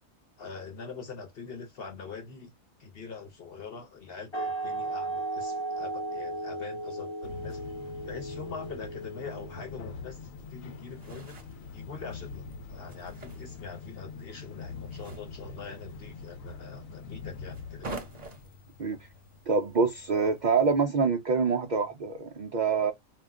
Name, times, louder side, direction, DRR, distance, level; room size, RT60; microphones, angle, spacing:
voice 1, 0.4-2.5 2.8-7.6 8.0-11.4 11.7-18.0, left 5 dB, 50° left, 0.9 m, -43 dB
sound 1, 4.3-9.8, right 2 dB, 25° left, 0.7 m, -35 dB
sound 2, 7.2-20.9, left 4 dB, 80° left, 1.0 m, -44 dB
sound 3, 10.4-20.7, right 2 dB, 40° right, 0.7 m, -48 dB
voice 2, 19.5-22.9, right 5 dB, 80° right, 0.4 m, -26 dB
2.4 x 2.2 x 3.4 m
omnidirectional pair, 1.4 m